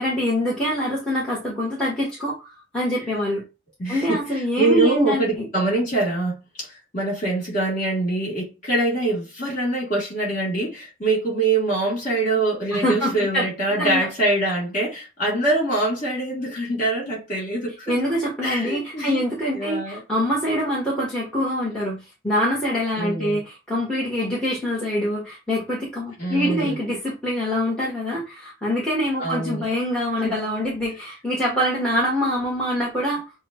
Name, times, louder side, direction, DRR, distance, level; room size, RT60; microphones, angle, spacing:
voice 1, 0.0-3.4 3.9-5.5 12.7-13.5 13.8-14.1 17.9-33.2, equal, 5° left, 1.4 m, -24 dB
voice 2, 3.8-17.9 18.4-19.2 19.5-20.0 23.0-23.4 26.2-26.8 29.2-29.7 30.2-30.4, right 2 dB, 40° left, 3.1 m, -24 dB
6.9 x 2.3 x 3.0 m
head